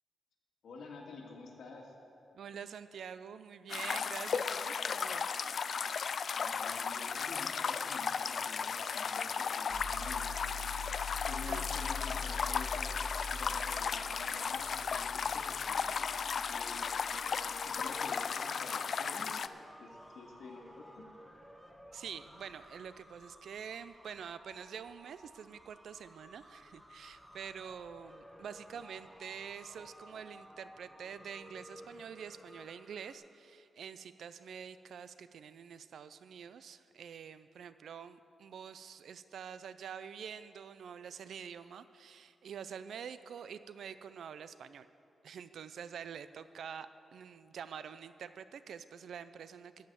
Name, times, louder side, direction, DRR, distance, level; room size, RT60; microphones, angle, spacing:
voice 1, 0.6-1.9 6.4-10.5 11.2-12.9 13.3-15.9 16.5-16.8 17.6-19.4 19.8-19.9 20.1-21.0, left 3 dB, 75° left, -1 dB, 2.0 m, -49 dB
voice 2, 2.3-5.4 11.5-11.8 21.9-44.9 45.2-49.9, right 7 dB, 75° right, 13 dB, 0.5 m, -46 dB
sound 1, 3.7-19.5, left 6 dB, 55° left, 0.3 m, -35 dB
sound 2, 9.7-17.8, left 3 dB, 35° left, 3.6 m, -44 dB
sound 3, 16.7-33.1, equal, ahead, 0.8 m, -55 dB
14.0 x 5.5 x 9.3 m, 2.7 s
wide cardioid pair, 125°, 0 cm